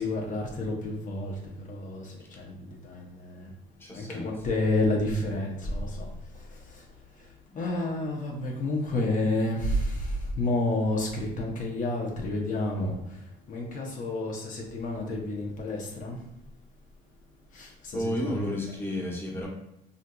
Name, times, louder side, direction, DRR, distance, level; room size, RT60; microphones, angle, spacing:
voice 1, 0.0-1.3 1.7-2.1 2.4-2.5 2.8-3.1 3.4-3.5 3.9-6.1 7.6-12.9 13.5-16.2 17.5-18.7, left 2 dB, 50° left, -1 dB, 0.6 m, -30 dB
voice 2, 3.8-4.3 17.9-19.5, left 1 dB, 15° left, -3 dB, 0.8 m, -32 dB
3.6 x 2.6 x 2.2 m, 0.84 s
cardioid pair, 110°, 17 cm